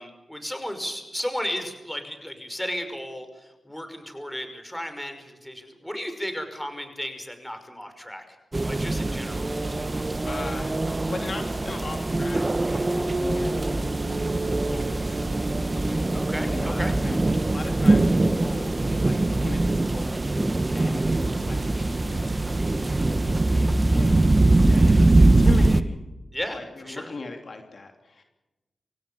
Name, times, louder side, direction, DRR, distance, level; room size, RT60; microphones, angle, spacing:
voice 1, 0.0-8.4 8.7-9.5 16.1-16.9 24.6-25.1 26.3-27.1, equal, 10° left, 8 dB, 5.7 m, -34 dB
sound 1, 8.5-25.8, right 2 dB, 30° right, 1.4 m, -22 dB
voice 2, 10.2-12.4 12.7-14.0 14.6-15.5 15.8-20.2 20.5-26.1 26.5-28.2, left 3 dB, 60° left, 4 dB, 2.9 m, -38 dB
26.5 x 17.0 x 7.1 m, 1.0 s
cardioid pair, 50°, 0 cm